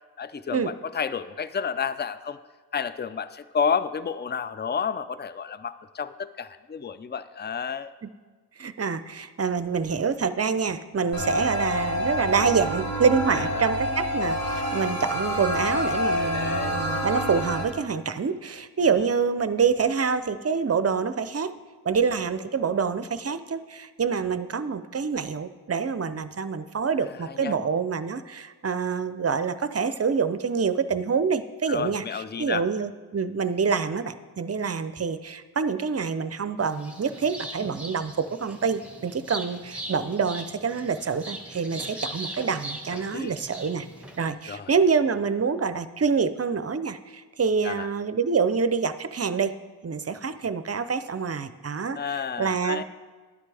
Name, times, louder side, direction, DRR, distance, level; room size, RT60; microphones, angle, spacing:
voice 1, 0.2-2.4 2.7-7.9 13.3-13.8 16.2-16.8 27.0-27.6 31.7-32.7 42.9-43.4 44.5-44.7 47.6-47.9 51.9-52.8, left 6 dB, 25° left, 14 dB, 0.4 m, -31 dB
voice 2, 8.6-21.5 21.8-32.0 32.4-43.9 44.2-49.5 49.8-52.0 52.4-52.8, right 5 dB, 40° right, 12 dB, 0.5 m, -26 dB
sound 1, 11.1-17.6, equal, 55° left, 2.9 m, -27 dB
sound 2, 36.6-44.3, right 1 dB, 5° right, 1.5 m, -40 dB
12.0 x 9.6 x 3.4 m, 1.4 s
cardioid pair, 45°, 40 cm